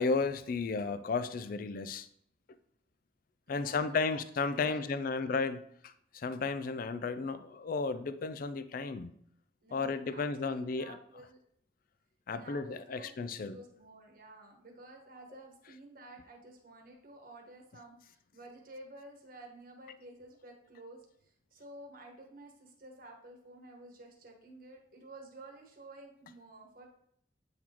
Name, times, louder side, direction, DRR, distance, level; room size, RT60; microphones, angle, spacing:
voice 1, 0.0-2.1 3.5-9.1 9.7-11.0 12.3-13.6, left 4 dB, 50° left, 13 dB, 0.3 m, -33 dB
voice 2, 3.5-4.2 4.5-5.3 9.6-11.4 12.3-26.9, right 2 dB, 50° right, 1 dB, 1.3 m, -52 dB
8.4 x 4.1 x 2.9 m, 0.68 s
head